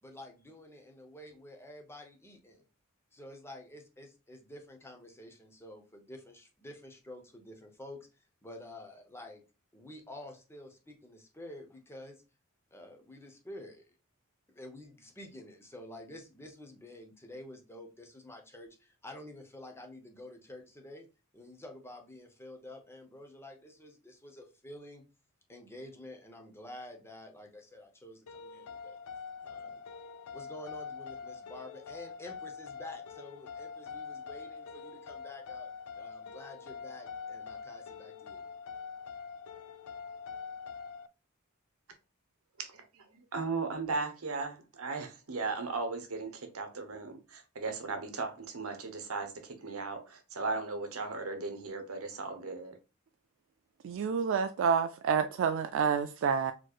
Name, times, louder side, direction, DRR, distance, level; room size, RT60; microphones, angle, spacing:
voice 1, 0.0-2.6 3.1-9.4 9.7-12.2 12.7-14.0 14.5-21.1 21.3-25.0 25.5-29.0 29.4-29.8 30.3-35.7 36.0-38.4, left 1 dB, 10° left, 0.8 m, -49 dB
sound 1, 28.3-41.1, left 5 dB, 90° left, 0.4 m, -44 dB
voice 2, 42.6-52.8, right 3 dB, 85° right, 0.9 m, -37 dB
voice 3, 53.8-56.5, right 6 dB, 65° right, 0.3 m, -28 dB
4.4 x 3.0 x 2.4 m
head